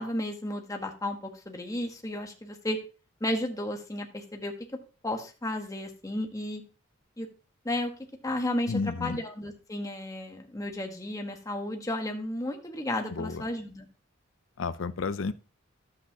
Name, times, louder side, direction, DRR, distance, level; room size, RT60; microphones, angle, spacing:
voice 1, 0.0-2.8 3.2-4.5 5.0-6.6 7.2-7.3 7.6-7.9 8.2-13.9, left 1 dB, 15° left, 1.3 m, -33 dB
voice 2, 8.7-9.2 13.1-13.4 14.6-15.3, left 4 dB, 75° left, 0.6 m, -31 dB
12.5 x 7.9 x 2.9 m
head